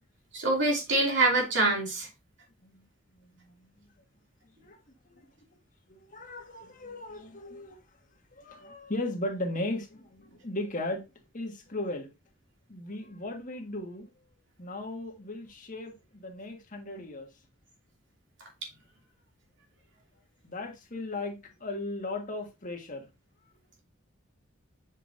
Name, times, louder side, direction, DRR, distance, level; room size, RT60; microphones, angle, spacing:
voice 1, 0.3-2.1, right 2 dB, 60° right, 2.6 m, -25 dB
voice 2, 3.2-3.5 4.6-4.8 5.1-5.2 6.1-7.8 8.4-11.1 11.3-12.1 12.7-14.0 14.6-17.3 20.4-23.1, left 2 dB, 40° left, 1.6 m, -36 dB
7.3 x 5.4 x 2.6 m
head